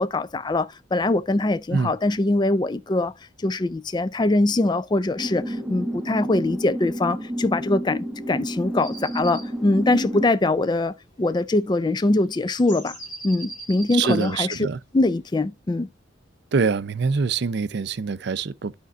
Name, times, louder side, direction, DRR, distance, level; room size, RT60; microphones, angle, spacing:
voice 1, 0.0-3.1 3.4-13.0 13.2-14.5 14.9-15.9, left 2 dB, 20° left, 0.4 m, -23 dB
sound 1, 5.2-10.3, right 1 dB, 5° right, 1.0 m, -30 dB
sound 2, 8.8-9.5 12.5-14.3, right 2 dB, 40° left, 4.4 m, -40 dB
voice 2, 13.9-14.8 16.5-18.7, right 5 dB, 60° right, 0.5 m, -24 dB
12.5 x 5.2 x 2.4 m
head